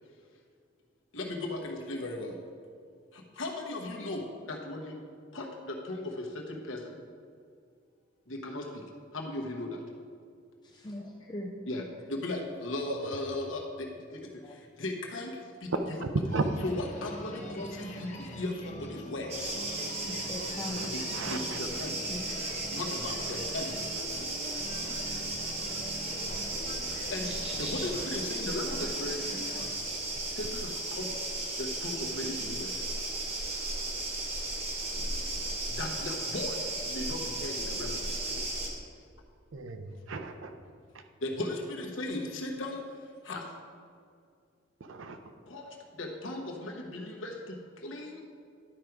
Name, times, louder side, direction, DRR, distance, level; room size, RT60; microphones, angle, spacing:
voice 1, 1.1-2.4 3.1-5.0 5.3-7.0 8.3-8.8 9.1-9.8 11.7-16.0 16.6-19.5 20.9-21.0 21.3-22.0 22.7-23.8 27.1-29.2 30.3-31.1 31.6-32.8 35.7-38.4 41.2-42.8 43.2-43.4 45.5-48.2, left 2 dB, 80° left, 1 dB, 1.2 m, -37 dB
voice 2, 10.6-11.6 14.5-14.6 19.8-20.8 22.1-22.3 24.4-24.8 25.4-25.5, left 1 dB, 20° left, 0 dB, 0.5 m, -41 dB
sound 1, 16.3-29.7, equal, 40° left, 1.0 m, -44 dB
sound 2, 19.3-38.7, right 2 dB, 35° right, 1.4 m, -35 dB
voice 3, 20.8-21.6 39.5-40.5 44.9-45.2, right 3 dB, 80° right, 7 dB, 0.6 m, -35 dB
11.0 x 5.0 x 4.6 m, 2.3 s
head